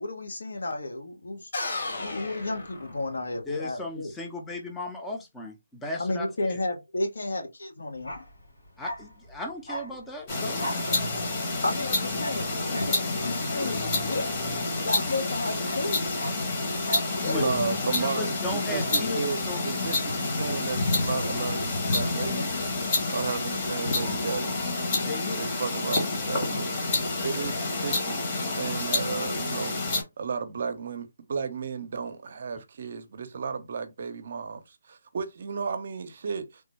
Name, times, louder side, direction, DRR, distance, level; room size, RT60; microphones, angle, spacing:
voice 1, 0.0-1.5 2.0-4.1 6.0-8.2 10.8-11.2 11.6-12.9 13.2-14.4 14.7-16.2 17.2-17.5 22.3-22.7, left 2 dB, 70° left, 1.1 m, -32 dB
sound 1, 1.5-3.5, left 2 dB, 55° left, 1.8 m, -34 dB
voice 2, 3.5-6.6 8.8-10.6 17.2-17.4 18.0-19.6 25.0-25.4, left 2 dB, 5° left, 0.5 m, -36 dB
Bark, 7.9-15.0 15.3-17.2 17.4-17.6, equal, 90° left, 1.5 m, -39 dB
sound 2, 10.3-30.0, left 2 dB, 30° left, 1.1 m, -28 dB
voice 3, 17.4-22.5 23.1-36.6, right 5 dB, 50° right, 0.6 m, -34 dB
3.3 x 2.1 x 3.1 m
figure-of-eight pair, 155°, 0 cm